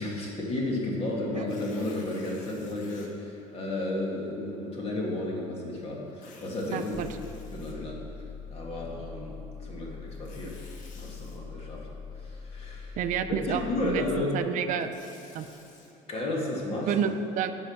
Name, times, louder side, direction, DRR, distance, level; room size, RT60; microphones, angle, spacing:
voice 1, 0.0-7.1 7.5-8.0 8.5-10.6 11.0-11.9 12.1-13.0 13.3-14.4 16.1-16.9, left 1 dB, 40° left, -2 dB, 2.3 m, -33 dB
Tearing, 1.3-3.1 3.7-3.8 6.1-8.2 10.1-11.4 14.5-15.9, left 3 dB, 60° left, 1.5 m, -54 dB
voice 2, 6.7-7.1 13.0-14.9 15.3-15.5 16.8-17.6, right 8 dB, 60° right, 9 dB, 0.5 m, -29 dB
sound 1, 6.9-14.2, left 5 dB, 15° left, 0.9 m, -42 dB
9.7 x 5.3 x 6.6 m, 3.0 s
supercardioid pair, 105°, 15 cm